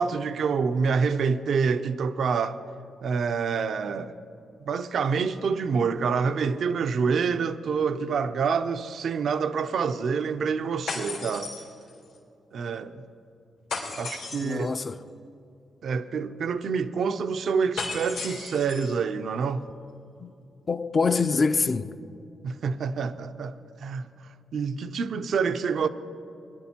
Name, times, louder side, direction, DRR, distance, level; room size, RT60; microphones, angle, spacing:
voice 1, 0.0-2.6 3.0-4.1 4.6-11.5 12.5-13.0 14.0-14.8 15.8-19.6 22.4-25.9, right 5 dB, 65° right, 0.4 m, -27 dB
sound 1, 10.9-12.2 13.7-14.7 17.8-18.9, left 4 dB, 90° left, 3.0 m, -35 dB
voice 2, 14.4-15.0 20.2-20.3 20.7-21.9, left 4 dB, 45° left, 0.4 m, -25 dB
22.0 x 10.5 x 2.8 m
supercardioid pair, 50°, 0 cm